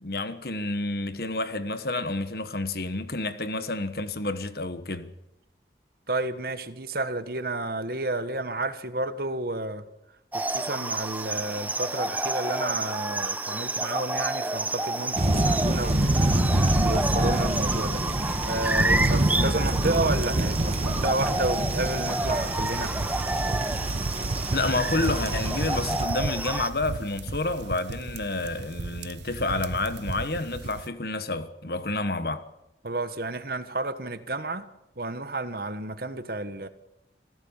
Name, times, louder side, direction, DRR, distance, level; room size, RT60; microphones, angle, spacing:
voice 1, 0.0-5.1 24.5-32.5, left 2 dB, 55° left, 1.4 m, -29 dB
voice 2, 6.1-9.8 10.3-16.3 16.8-18.0 18.4-22.9 32.8-34.7 35.0-36.7, right 2 dB, 55° right, 1.5 m, -31 dB
sound 1, 10.3-26.7, right 2 dB, 10° right, 0.9 m, -30 dB
sound 2, 15.2-26.0, right 1 dB, 35° right, 1.5 m, -27 dB
sound 3, 18.6-30.9, right 3 dB, 80° right, 0.7 m, -34 dB
26.5 x 16.0 x 7.4 m
head